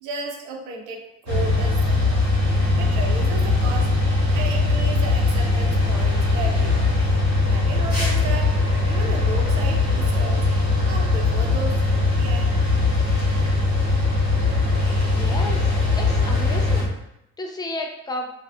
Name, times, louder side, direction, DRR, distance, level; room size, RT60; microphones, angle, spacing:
voice 1, 0.0-2.2 2.8-3.9 4.3-6.9 7.5-8.6 8.9-10.5 10.8-12.5, right 3 dB, 60° right, 1 dB, 0.6 m, -34 dB
sound 1, 1.3-16.8, left 3 dB, 90° right, 0.9 m, -20 dB
voice 2, 15.1-16.9 17.4-18.3, left 2 dB, 10° left, 2 dB, 0.4 m, -32 dB
2.5 x 2.3 x 2.2 m, 0.83 s
hypercardioid pair, 50°, 35 cm